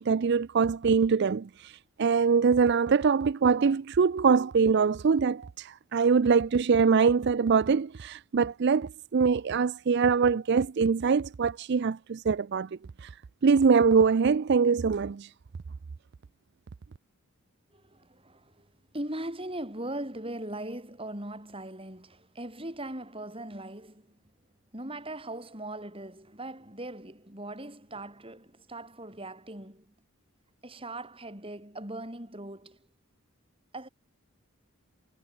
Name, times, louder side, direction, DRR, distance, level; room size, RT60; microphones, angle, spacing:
voice 1, 0.0-12.7 13.0-13.1 13.4-15.3, right 5 dB, 50° right, 0.4 m, -23 dB
voice 2, 17.7-24.2 24.7-29.9 30.6-32.9 33.7-33.9, right 1 dB, 25° right, 8.0 m, -40 dB
head